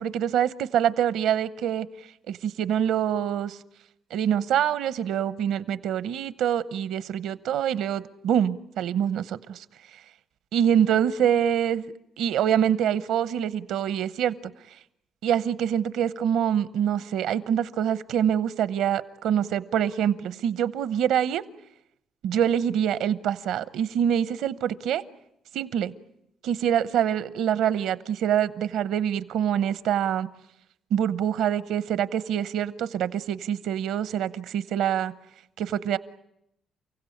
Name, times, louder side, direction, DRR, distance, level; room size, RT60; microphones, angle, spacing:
voice 1, 0.0-1.9 2.3-3.6 4.1-9.6 10.5-14.3 15.2-21.4 22.2-25.0 25.5-25.9 26.4-30.3 30.9-35.1 35.6-36.0, right 9 dB, 85° right, 16 dB, 0.9 m, -25 dB
29.5 x 16.5 x 8.6 m, 0.81 s
cardioid pair, 90°, 0 cm